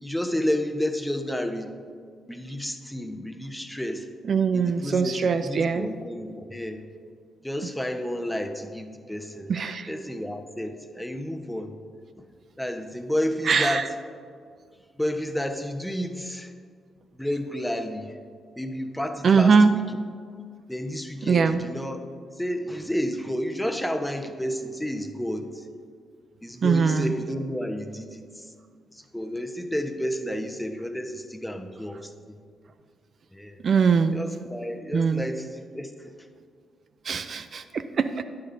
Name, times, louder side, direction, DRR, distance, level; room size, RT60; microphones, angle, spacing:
voice 1, 0.0-1.7 2.3-4.0 4.5-6.8 7.4-9.5 9.9-11.8 12.2-12.3 12.6-13.9 15.0-16.5 17.2-18.1 18.6-19.8 20.7-22.0 22.4-25.6 26.4-28.4 28.9-32.1 33.3-33.6 34.1-36.1, equal, 5° left, 6 dB, 1.0 m, -31 dB
voice 2, 4.3-5.9 9.5-9.9 13.5-13.9 19.2-19.7 21.3-21.6 26.6-27.1 33.6-34.2 34.9-35.3 37.1-38.1, right 5 dB, 55° right, 9 dB, 0.4 m, -21 dB
10.5 x 10.5 x 2.7 m, 2.1 s
hypercardioid pair, 45°, 0 cm